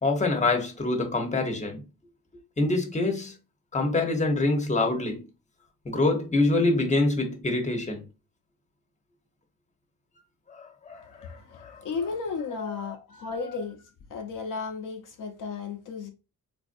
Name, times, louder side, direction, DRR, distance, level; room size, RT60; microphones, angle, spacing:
voice 1, 0.0-1.8 2.6-3.3 3.7-5.2 5.8-8.1 10.5-11.9 12.7-12.8, left 2 dB, 20° left, 1.0 m, -26 dB
voice 2, 10.9-13.8 14.1-16.1, left 5 dB, 65° left, 0.7 m, -34 dB
3.8 x 2.6 x 2.6 m
cardioid pair, 80°, 35 cm